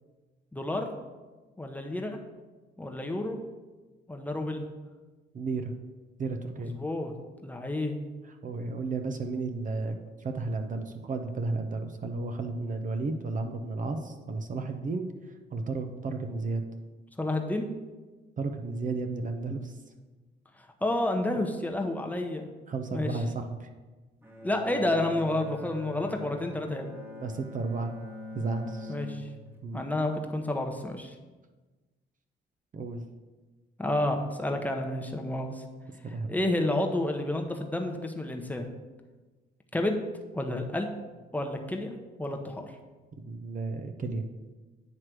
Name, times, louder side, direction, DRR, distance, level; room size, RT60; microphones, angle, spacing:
voice 1, 0.5-0.9 1.6-2.2 2.8-3.4 4.1-4.6 6.6-7.1 7.4-8.0 17.2-17.7 20.8-22.5 22.9-23.2 24.4-26.9 28.9-29.3 29.7-31.1 33.8-35.6 36.3-38.7 39.7-40.0 40.3-40.9 41.3-41.9 42.2-42.7, left 1 dB, 10° left, 3 dB, 0.8 m, -30 dB
voice 2, 5.3-5.7 6.2-6.7 8.4-15.1 15.5-16.6 18.4-19.7 22.7-23.7 27.2-27.9 28.3-28.9 29.6-29.9 32.7-33.0 36.0-36.4 43.2-44.3, right 3 dB, 40° right, 6 dB, 0.7 m, -33 dB
Bowed string instrument, 24.2-29.7, left 1 dB, 10° right, 1.2 m, -43 dB
9.4 x 3.2 x 6.0 m, 1.3 s
cardioid pair, 90°, 20 cm